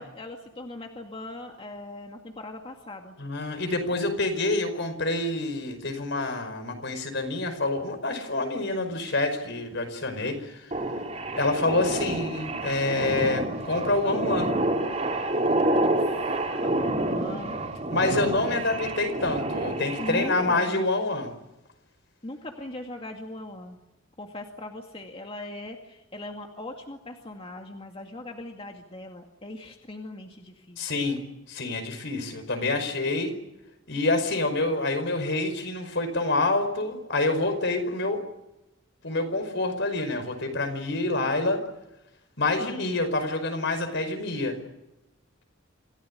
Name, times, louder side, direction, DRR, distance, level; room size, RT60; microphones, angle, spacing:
voice 1, 0.0-3.2 15.8-17.6 18.5-18.6 20.0-20.9 22.2-23.8 24.2-30.8 42.6-43.0, left 1 dB, 30° left, 3 dB, 2.2 m, -40 dB
voice 2, 3.2-10.7 11.3-14.6 17.9-21.3 30.8-31.2 31.5-33.3 33.9-38.2 39.0-41.6 42.4-44.6, left 2 dB, 65° left, 8 dB, 5.2 m, -27 dB
sound 1, 10.7-20.6, right 1 dB, 35° right, 3.8 m, -28 dB
27.5 x 16.5 x 9.9 m, 0.92 s
head